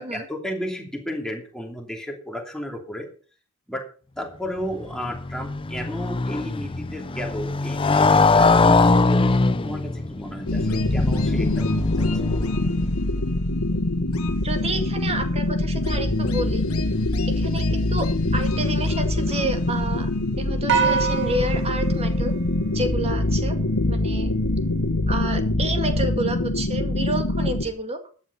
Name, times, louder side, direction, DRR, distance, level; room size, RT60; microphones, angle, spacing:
voice 1, 0.0-3.1 3.7-3.9 4.2-11.6 11.9-12.1, equal, 5° left, 2 dB, 2.9 m, -33 dB
Motorcycle, 4.6-12.8, left 3 dB, 25° left, 0.6 m, -22 dB
sound 1, 10.5-27.7, left 2 dB, 90° left, 1.9 m, -24 dB
voice 2, 14.4-16.6 17.3-20.1 20.4-22.3 22.7-23.6 23.9-24.3 25.1-28.0, right 2 dB, 30° right, 7 dB, 2.2 m, -29 dB
sound 2, 20.7-23.2, right 7 dB, 55° right, 1.9 m, -26 dB
13.5 x 9.6 x 5.5 m, 0.40 s
head